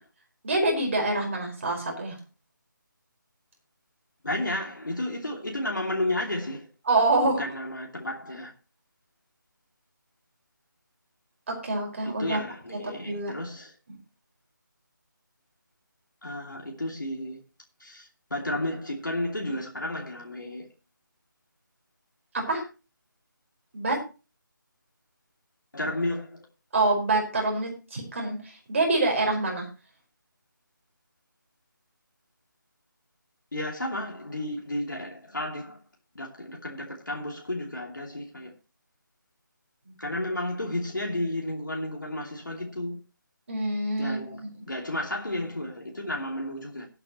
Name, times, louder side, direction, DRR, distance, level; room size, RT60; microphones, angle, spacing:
voice 1, 0.4-2.2 6.8-7.4 11.5-12.4 13.0-13.3 22.3-22.6 23.7-24.0 26.7-29.7 39.8-39.9 43.5-44.4, right 2 dB, 40° right, 5.1 m, -26 dB
voice 2, 4.2-6.7 7.4-8.5 12.0-13.8 16.2-17.4 17.8-20.7 25.7-26.4 33.5-35.8 36.1-38.5 40.0-43.0 44.0-44.4 44.7-46.9, left 1 dB, 65° left, 2.8 m, -32 dB
18.0 x 8.9 x 3.1 m
figure-of-eight pair, 155°, 11 cm